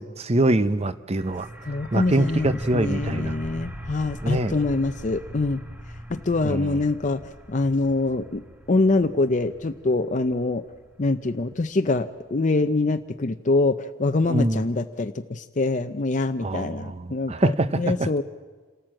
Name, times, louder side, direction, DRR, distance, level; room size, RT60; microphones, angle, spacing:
voice 1, 0.0-1.5 1.9-3.3 4.2-4.6 6.4-6.7 14.3-14.6 16.4-18.1, right 1 dB, 35° right, 13 dB, 0.7 m, -24 dB
sound 1, 1.2-12.7, equal, 10° right, 1.4 m, -40 dB
voice 2, 1.7-5.6 6.1-7.2 7.5-8.4 8.7-10.6 11.0-18.2, left 3 dB, 40° left, 7 dB, 0.6 m, -24 dB
27.5 x 13.5 x 7.6 m, 1.4 s
head